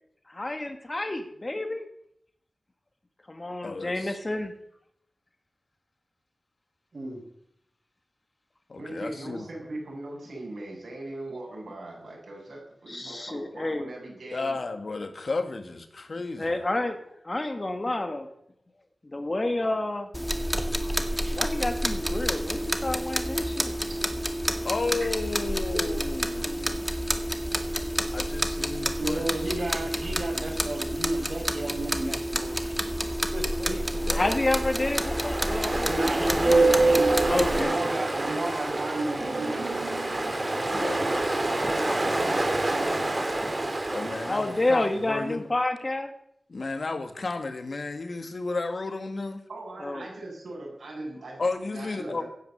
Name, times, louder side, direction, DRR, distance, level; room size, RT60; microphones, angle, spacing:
voice 1, 0.3-1.9 3.3-4.5 12.9-13.9 16.4-17.0 17.2-18.3 19.0-20.1 21.3-23.8 33.6-33.8 34.1-35.9 36.3-36.4 37.3-37.8 44.2-46.1 49.8-50.1, left 2 dB, 35° left, 6 dB, 2.2 m, -29 dB
voice 2, 3.6-4.2 8.7-9.5 14.3-16.6 24.6-26.9 28.1-29.5 34.0-34.4 40.7-41.0 43.9-45.5 46.5-49.4 51.4-52.2, left 3 dB, 60° left, 8 dB, 2.0 m, -33 dB
voice 3, 6.9-7.2 29.0-32.9 33.3-34.2 35.9-40.1, right 2 dB, 60° right, 3 dB, 5.6 m, -33 dB
voice 4, 8.8-14.6 23.7-23.8 25.7-26.4 40.6-43.3 49.5-52.3, right 2 dB, 85° right, -1 dB, 7.8 m, -40 dB
sound 1, 20.1-37.6, equal, 5° right, 1.8 m, -29 dB
Ocean, 33.9-45.0, right 2 dB, 35° right, 3.0 m, -27 dB
16.5 x 9.9 x 8.1 m, 0.73 s
wide cardioid pair, 70°, 0 cm